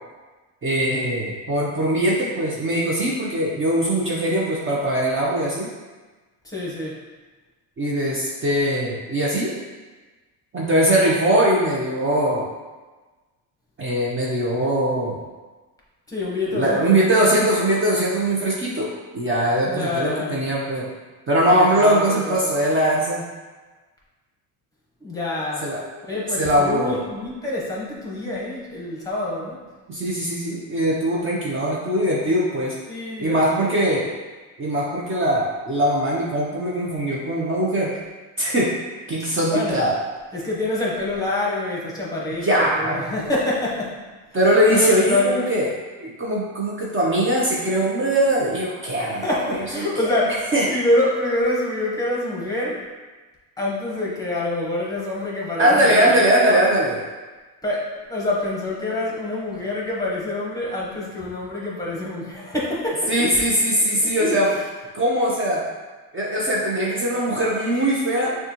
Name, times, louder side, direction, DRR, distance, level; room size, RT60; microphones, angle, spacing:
voice 1, 0.6-5.7 7.8-9.5 10.5-12.5 13.8-15.2 16.5-20.9 21.3-23.3 25.6-25.8 26.4-27.0 29.9-32.7 33.2-34.1 34.6-38.0 38.4-38.7 39.1-40.0 42.3-43.0 44.3-45.7 46.0-50.1 50.5-50.6 55.6-57.0 63.1-64.5 64.9-65.7 66.1-68.4, right 1 dB, 30° right, -4 dB, 0.8 m, -21 dB
voice 2, 6.4-6.9 16.1-17.0 19.6-20.3 21.5-22.4 25.0-25.7 26.0-29.6 32.9-33.8 39.5-39.9 40.3-44.0 44.4-45.5 49.2-52.8 53.6-56.7 57.6-63.1 63.9-64.4, left 1 dB, 10° left, -5 dB, 1.1 m, -26 dB
6.3 x 2.4 x 3.0 m, 1.3 s
cardioid pair, 110°, 40 cm